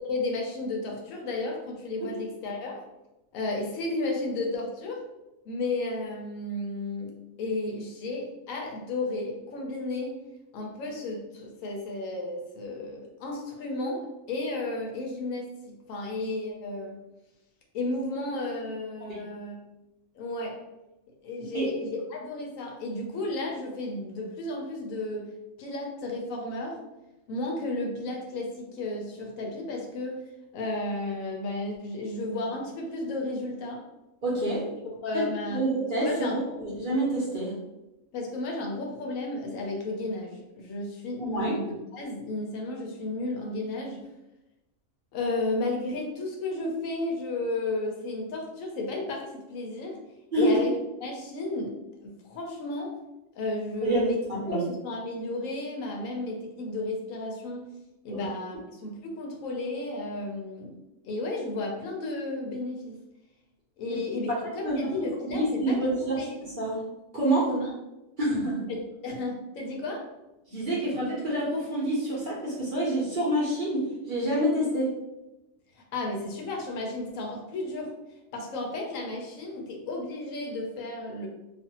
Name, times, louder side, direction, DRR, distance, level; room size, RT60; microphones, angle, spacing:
voice 1, 0.0-2.8 3.3-5.0 5.5-10.2 10.5-17.0 17.7-19.6 20.1-20.6 21.2-25.3 25.6-26.8 27.3-30.2 30.5-33.8 35.0-35.6 36.0-36.6 38.1-44.0 45.1-50.0 50.4-50.7 51.0-51.8 52.0-52.9 53.3-54.2 54.5-57.6 58.0-60.8 61.0-63.0 63.8-66.4 67.5-67.7 68.7-70.1 75.8-77.9 78.3-81.3, left 2 dB, 75° left, 0 dB, 1.0 m, -33 dB
voice 2, 34.2-34.8 35.1-36.3 36.6-37.6 41.3-41.5 50.3-50.6 53.8-54.7 58.1-58.3 63.9-64.0 64.3-64.4 64.6-64.9 65.3-66.8 67.1-67.5 68.2-68.7 70.5-75.0, right 1 dB, 45° right, -7 dB, 0.7 m, -27 dB
2.5 x 2.4 x 2.8 m, 0.96 s
omnidirectional pair, 1.5 m